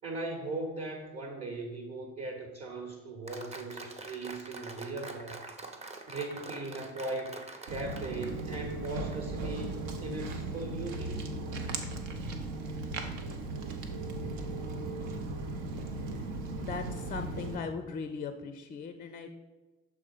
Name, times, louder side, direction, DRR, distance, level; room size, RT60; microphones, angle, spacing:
voice 1, 0.0-5.4 5.8-7.4 7.7-11.2, right 2 dB, 35° right, 2 dB, 1.0 m, -39 dB
Applause, 3.3-9.2, right 3 dB, 15° right, 0.6 m, -45 dB
Walk footsteps, 7.7-17.6, right 2 dB, 65° right, 0.7 m, -37 dB
voice 2, 16.6-19.3, left 5 dB, 25° left, 7 dB, 0.4 m, -38 dB
6.4 x 3.5 x 4.8 m, 1.2 s
figure-of-eight pair, 45°, 41 cm